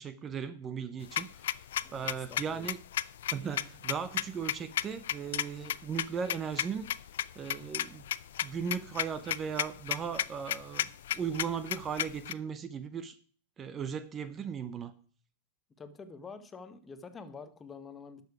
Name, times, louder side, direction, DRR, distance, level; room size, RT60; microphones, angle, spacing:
voice 1, 0.0-1.5 1.9-2.8 3.3-6.9 7.4-8.1 8.4-10.9 11.1-13.2 13.6-14.9, right 7 dB, 25° right, 13 dB, 0.7 m, -37 dB
sound 1, 1.0-12.3, left 11 dB, 80° left, 0.4 m, -34 dB
voice 2, 1.8-2.7 15.8-18.2, left 4 dB, 15° left, 11 dB, 0.9 m, -47 dB
11.5 x 6.9 x 4.8 m, 0.44 s
supercardioid pair, 140°, 0 cm